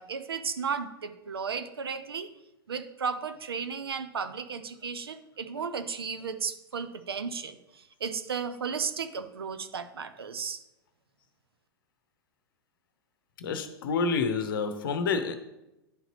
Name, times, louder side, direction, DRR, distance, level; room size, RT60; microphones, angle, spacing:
voice 1, 0.0-2.3 2.7-10.6, right 6 dB, 80° right, 10 dB, 0.6 m, -34 dB
voice 2, 13.4-15.4, left 4 dB, 60° left, 9 dB, 0.8 m, -28 dB
11.0 x 3.9 x 3.0 m, 0.93 s
figure-of-eight pair, 100°, 13 cm